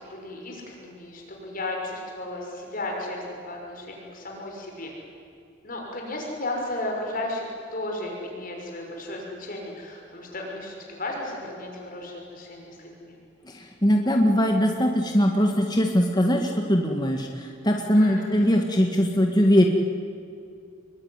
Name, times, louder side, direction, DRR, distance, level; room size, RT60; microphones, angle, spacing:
voice 1, 0.1-4.9 5.6-7.4 7.7-13.2 17.9-18.3, left 2 dB, 45° left, 0 dB, 6.0 m, -34 dB
voice 2, 13.5-19.6, equal, 20° left, 2 dB, 1.8 m, -21 dB
27.0 x 22.5 x 9.7 m, 2.5 s
head